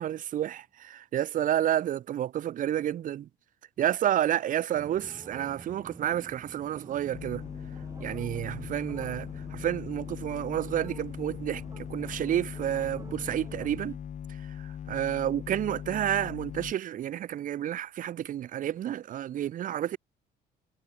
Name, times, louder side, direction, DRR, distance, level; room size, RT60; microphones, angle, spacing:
voice 1, 0.0-3.3 3.8-7.4 8.0-14.0 14.9-20.0, right 11 dB, 50° right, 0.8 m, -30 dB
sound 1, 4.7-13.9, right 3 dB, 20° right, 7.1 m, -49 dB
sound 2, 7.1-16.7, left 9 dB, 45° left, 1.7 m, -40 dB
cardioid pair, 110°, 17 cm